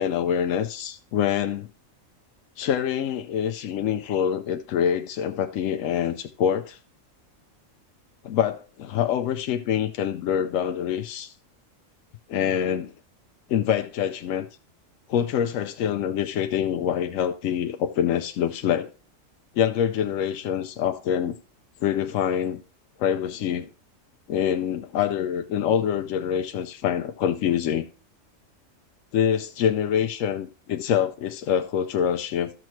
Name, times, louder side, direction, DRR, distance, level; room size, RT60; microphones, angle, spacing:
voice 1, 0.0-1.7 2.6-6.8 8.2-11.3 12.3-12.9 13.5-14.5 15.1-18.9 19.5-21.4 21.8-22.6 23.0-23.7 24.3-27.9 29.1-32.5, left 9 dB, 75° left, 1.0 m, -25 dB
14.0 x 6.1 x 3.0 m
omnidirectional pair, 1.4 m